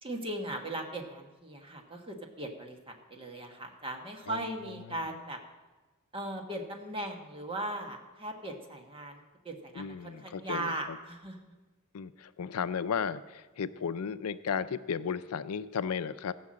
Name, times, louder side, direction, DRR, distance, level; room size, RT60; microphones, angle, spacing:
voice 1, 0.0-5.4 6.1-11.4, right 1 dB, 25° right, 3 dB, 1.4 m, -38 dB
voice 2, 9.8-11.0 11.9-16.3, left 6 dB, 80° left, 13 dB, 0.5 m, -34 dB
15.5 x 6.0 x 7.6 m, 1.2 s
head